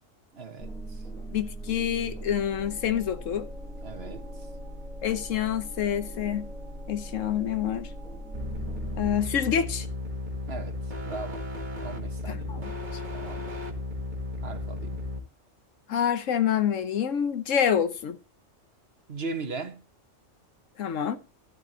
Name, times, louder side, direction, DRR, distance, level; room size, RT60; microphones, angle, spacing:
voice 1, 0.3-1.0 3.8-4.2 10.5-10.8 11.0-11.4 11.8-12.7 13.1-13.6 14.4-15.0 19.1-19.8, right 4 dB, 55° right, 1.5 m, -38 dB
sound 1, 0.6-9.2, right 1 dB, ahead, 1.5 m, -40 dB
voice 2, 1.3-3.5 5.0-6.5 6.9-7.9 9.0-9.9 12.3-12.7 15.9-18.2 20.8-21.2, left 9 dB, 85° left, 1.3 m, -27 dB
sound 2, 8.3-15.2, left 2 dB, 40° right, 1.6 m, -34 dB
12.5 x 10.0 x 2.8 m
omnidirectional pair, 1.3 m